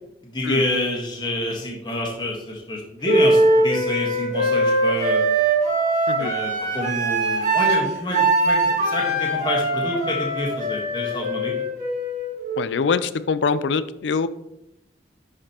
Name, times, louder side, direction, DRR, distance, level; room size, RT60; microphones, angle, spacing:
voice 1, 0.2-5.2 6.2-11.5, left 1 dB, 25° left, -2 dB, 1.4 m, -27 dB
Wind instrument woodwind instrument, 3.0-12.8, right 2 dB, 40° right, 2.0 m, -21 dB
voice 2, 12.6-14.3, left 5 dB, 85° left, 14 dB, 0.4 m, -23 dB
11.0 x 4.9 x 2.9 m, 0.85 s
head